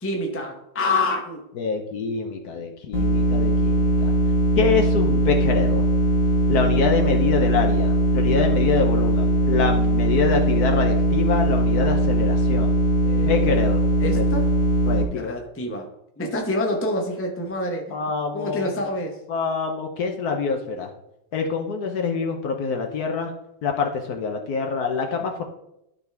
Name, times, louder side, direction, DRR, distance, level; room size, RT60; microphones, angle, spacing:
voice 1, 0.0-1.4 13.0-13.4 14.0-14.5 15.1-15.9 16.2-17.9 18.3-19.2, left 2 dB, 10° left, 1 dB, 0.6 m, -27 dB
voice 2, 1.6-4.1 4.6-5.9 6.5-12.7 13.2-13.9 14.1-14.2 14.9-15.3 17.9-18.8 19.3-20.9 21.3-23.3 23.6-25.4, left 5 dB, 60° left, 4 dB, 1.2 m, -25 dB
sound 1, 2.9-15.0, right 1 dB, 35° left, 1.4 m, -20 dB
12.5 x 4.1 x 3.4 m, 0.82 s
omnidirectional pair, 2.1 m